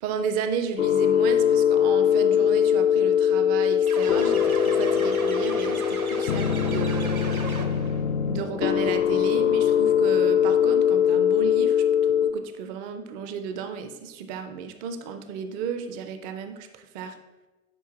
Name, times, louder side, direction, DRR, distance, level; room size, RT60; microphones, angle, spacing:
voice 1, 0.0-7.5 8.3-17.2, right 6 dB, 20° right, 8 dB, 0.4 m, -33 dB
sound 1, 0.8-12.3, left 9 dB, 65° left, 0.5 m, -22 dB
sound 2, 3.9-8.0, right 3 dB, 85° right, 1.2 m, -35 dB
9.6 x 4.8 x 2.8 m, 1.2 s
figure-of-eight pair, 95°, 42 cm